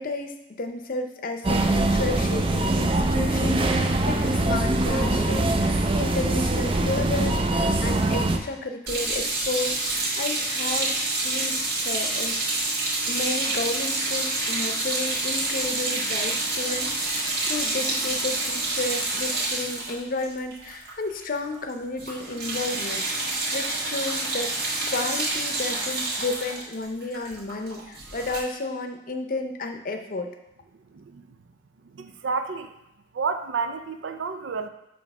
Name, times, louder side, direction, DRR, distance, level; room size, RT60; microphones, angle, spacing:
voice 1, 0.0-10.9 11.2-12.4 13.1-30.3, left 2 dB, 50° left, 5 dB, 0.7 m, -32 dB
sound 1, 1.4-8.4, right 2 dB, 30° right, 0.5 m, -23 dB
sound 2, 8.9-21.2 21.5-21.7 22.0-28.4, right 2 dB, 55° right, 1.7 m, -28 dB
voice 2, 30.9-31.4 31.8-32.7 33.1-34.7, right 5 dB, 85° right, 7 dB, 0.5 m, -30 dB
7.1 x 3.1 x 5.3 m, 0.90 s
head